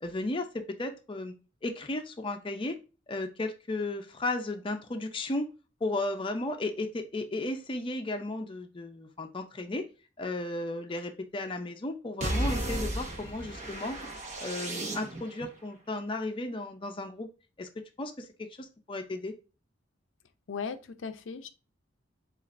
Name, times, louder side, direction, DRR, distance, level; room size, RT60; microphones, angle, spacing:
voice 1, 0.0-1.3 1.6-2.8 3.1-5.5 5.8-9.8 10.2-14.1 14.4-17.3 17.6-17.7 18.0-19.3, left 2 dB, 30° left, 5 dB, 0.5 m, -34 dB
sound 1, 12.2-15.5, right 1 dB, 40° right, 1.0 m, -34 dB
voice 2, 20.5-21.5, left 5 dB, 90° left, 9 dB, 0.5 m, -37 dB
7.1 x 2.5 x 2.5 m, 0.32 s
head